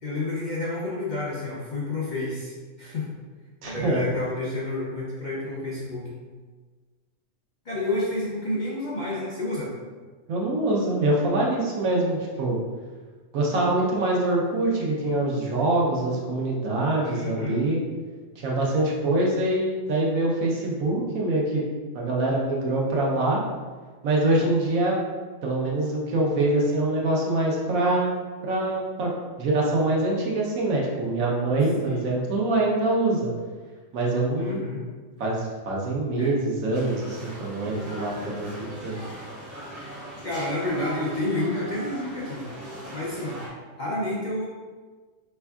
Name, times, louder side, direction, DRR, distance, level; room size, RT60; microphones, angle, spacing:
voice 1, 0.0-3.1 3.6-6.1 7.6-9.7 17.0-17.6 31.9-32.0 34.4-34.8 36.2-36.3 40.2-42.4 42.9-43.4 43.8-44.4, left 2 dB, 50° left, -6 dB, 0.5 m, -30 dB
voice 2, 3.6-4.0 10.3-12.6 13.3-17.8 18.4-21.6 21.9-23.4 24.0-25.0 25.4-28.1 28.4-29.1 29.4-33.3 33.9-34.6 35.2-38.5 38.8-39.0, right 2 dB, 85° right, -3 dB, 1.2 m, -24 dB
sound 1, 36.7-43.5, equal, 45° right, 1.9 m, -39 dB
4.4 x 3.4 x 2.3 m, 1.4 s
omnidirectional pair, 1.4 m